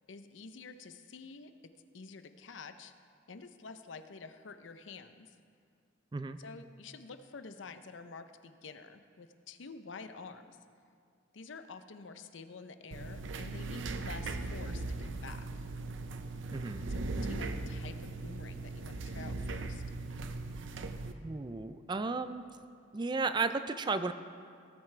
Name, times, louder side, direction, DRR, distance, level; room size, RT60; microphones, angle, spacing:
voice 1, 0.1-1.5 1.9-2.9 3.3-5.4 6.4-10.6 11.3-15.7 16.9-19.8, left 4 dB, 75° left, 9 dB, 0.6 m, -49 dB
sound 1, 12.9-21.1, right 3 dB, 80° right, 0.6 m, -39 dB
voice 2, 16.5-16.8 21.2-22.4 22.9-24.1, right 4 dB, 25° right, 11 dB, 0.3 m, -34 dB
18.5 x 9.2 x 3.3 m, 2.3 s
head